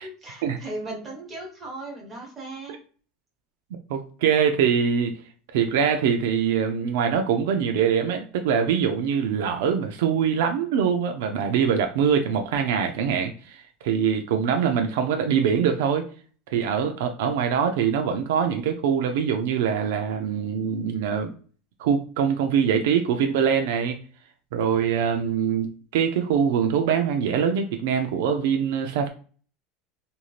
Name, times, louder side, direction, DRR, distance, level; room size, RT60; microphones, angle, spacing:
voice 1, 0.0-2.7, right 2 dB, 20° right, -2 dB, 1.2 m, -37 dB
voice 2, 3.9-5.1 5.5-16.1 16.5-21.3 21.8-24.0 24.5-25.7 25.9-29.1, right 7 dB, 85° right, 5 dB, 0.4 m, -23 dB
3.0 x 2.6 x 2.4 m, 0.40 s
supercardioid pair, 155°, 0 cm